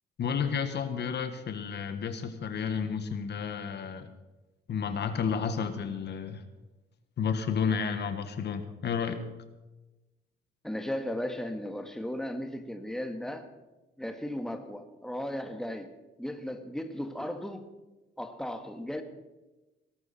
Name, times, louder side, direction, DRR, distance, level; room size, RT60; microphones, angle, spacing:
voice 1, 0.2-4.1 4.7-6.4 7.2-9.3, left 6 dB, 60° left, 8 dB, 1.5 m, -31 dB
voice 2, 10.6-13.5 14.0-15.9 16.2-17.7 18.2-19.0, left 1 dB, ahead, 6 dB, 1.7 m, -36 dB
20.0 x 12.5 x 4.3 m, 1.1 s
cardioid pair, 90°, 20 cm